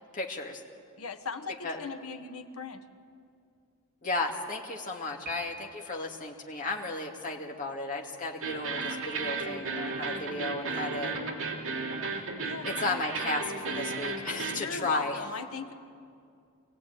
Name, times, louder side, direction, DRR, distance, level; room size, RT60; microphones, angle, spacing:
voice 1, 0.1-0.6 1.6-1.8 4.0-11.3 12.7-15.2, left 2 dB, 40° left, 0 dB, 2.3 m, -34 dB
voice 2, 1.0-2.8 12.4-12.7 14.5-15.7, left 4 dB, 75° left, 7 dB, 1.4 m, -38 dB
Piano, 5.2-6.2, right 2 dB, 45° right, 3.4 m, -43 dB
sound 1, 8.4-14.6, right 4 dB, 65° right, 3.2 m, -34 dB
26.0 x 17.0 x 9.2 m, 2.4 s
head